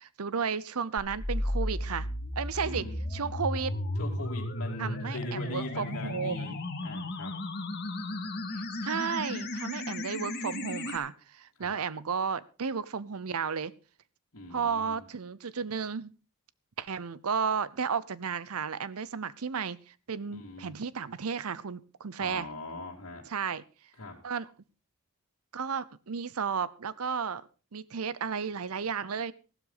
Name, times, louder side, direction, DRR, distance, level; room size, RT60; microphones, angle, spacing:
voice 1, 0.0-2.1 2.4-2.9 3.1-3.7 4.8-6.6 8.5-13.7 14.5-16.1 16.8-22.5 23.3-23.6 24.2-24.5 25.5-27.4 27.7-29.3, right 6 dB, 85° right, 18 dB, 0.7 m, -33 dB
sound 1, 1.0-11.0, left 1 dB, 50° left, 2.2 m, -34 dB
voice 2, 2.6-2.9 4.0-6.6 6.8-7.3 11.6-11.8 14.3-15.0 20.3-20.8 22.2-23.2 24.0-24.2, left 1 dB, 75° left, -4 dB, 2.5 m, -41 dB
15.0 x 12.5 x 4.0 m, 0.34 s
head